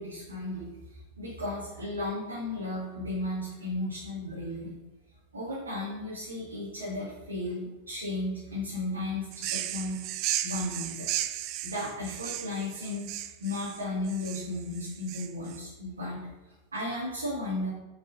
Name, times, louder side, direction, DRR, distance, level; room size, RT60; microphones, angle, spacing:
voice 1, 0.0-4.8 5.3-10.0 10.4-11.1 11.6-13.1 13.4-16.2 16.7-17.7, left 2 dB, 75° right, -7 dB, 1.9 m, -34 dB
sound 1, 9.3-15.6, right 13 dB, 40° right, 0.4 m, -35 dB
6.9 x 4.7 x 3.8 m, 1.1 s
figure-of-eight pair, 90°, 0 cm